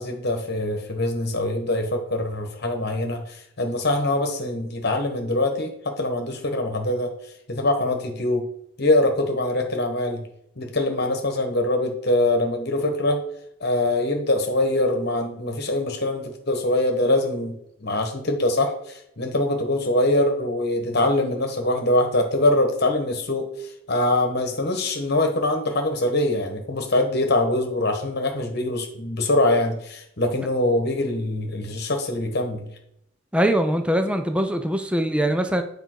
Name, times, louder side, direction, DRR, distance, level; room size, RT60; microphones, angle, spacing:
voice 1, 0.0-7.1 7.5-8.5 8.8-10.3 10.6-13.2 13.6-17.6 17.8-32.7, left 1 dB, 50° left, 4 dB, 1.3 m, -23 dB
voice 2, 33.3-35.6, right 1 dB, 5° right, 7 dB, 0.6 m, -22 dB
8.9 x 5.2 x 4.6 m, 0.77 s
head